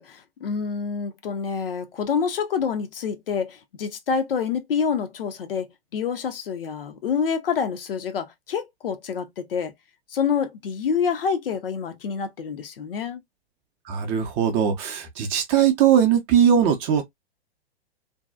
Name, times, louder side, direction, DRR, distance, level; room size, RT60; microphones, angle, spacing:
voice 1, 0.0-9.7 10.1-13.2, left 6 dB, 60° left, 0.6 m, -27 dB
voice 2, 13.9-17.0, right 8 dB, 25° right, 0.6 m, -20 dB
2.6 x 2.2 x 2.2 m
figure-of-eight pair, 105°, 32 cm